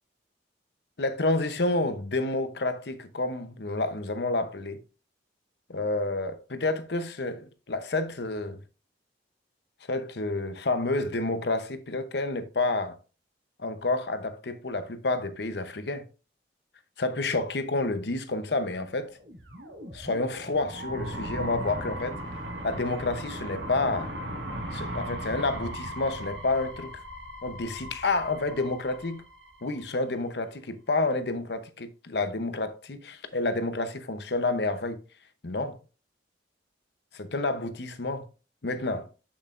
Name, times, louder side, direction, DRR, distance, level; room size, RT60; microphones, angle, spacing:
voice 1, 1.0-4.8 5.7-8.6 9.9-13.0 13.6-16.1 17.0-19.2 19.9-22.2 22.6-24.1 24.7-26.9 27.4-29.2 29.6-35.0 35.4-35.8 37.1-38.3 38.6-39.1, left 2 dB, 65° left, 0.8 m, -29 dB
sound 1, 19.1-30.1, equal, 90° right, 1.8 m, -38 dB
7.8 x 7.2 x 2.5 m
head